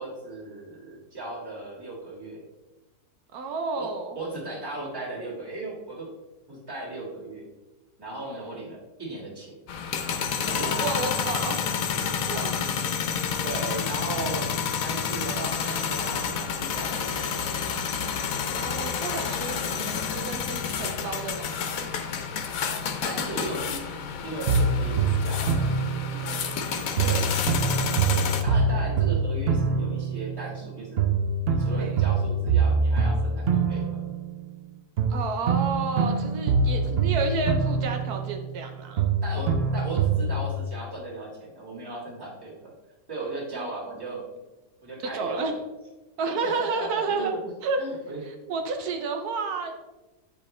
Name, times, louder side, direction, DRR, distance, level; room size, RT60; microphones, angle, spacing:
voice 1, 0.0-2.4 3.8-3.9 4.1-6.1 6.5-7.5 8.0-9.5 10.5-10.8 13.4-14.5 14.8-17.7 23.0-23.8 24.2-25.7 27.0-27.3 28.1-31.1 31.5-34.0 39.2-42.7 43.1-44.3 44.8-45.5 46.3-46.5 46.8-47.4 47.8-48.2, right 2 dB, 15° right, -4 dB, 1.7 m, -36 dB
voice 2, 3.3-4.2 8.2-8.5 10.6-11.6 12.0-12.5 18.5-21.9 26.1-26.9 31.8-31.9 35.1-39.1 39.4-39.5 43.5-43.7 45.1-45.6 46.2-47.3 47.6-47.8 48.3-49.7, right 4 dB, 80° right, 5 dB, 1.2 m, -31 dB
sound 1, 9.7-28.4, left 7 dB, 70° left, 1.1 m, -29 dB
sound 2, 24.5-26.6 27.0-30.7 31.0-34.6 35.0-38.7 39.0-40.6, right 4 dB, 60° right, 0.7 m, -25 dB
8.7 x 4.6 x 3.2 m, 1.1 s
omnidirectional pair, 1.6 m